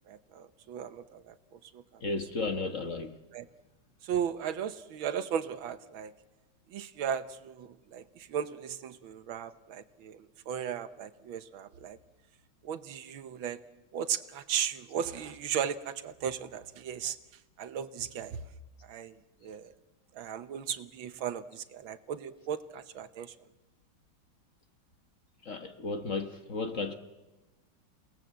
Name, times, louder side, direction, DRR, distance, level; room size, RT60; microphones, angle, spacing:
voice 1, 0.1-1.4 1.7-2.0 3.3-3.5 4.0-6.1 6.7-12.0 12.6-13.6 13.9-17.2 17.6-18.4 18.9-19.7 20.2-23.4, right 8 dB, 80° right, 1.8 m, -36 dB
voice 2, 2.0-3.2 25.4-26.9, left 3 dB, 45° left, 1.3 m, -34 dB
29.0 x 18.5 x 7.6 m
omnidirectional pair, 2.2 m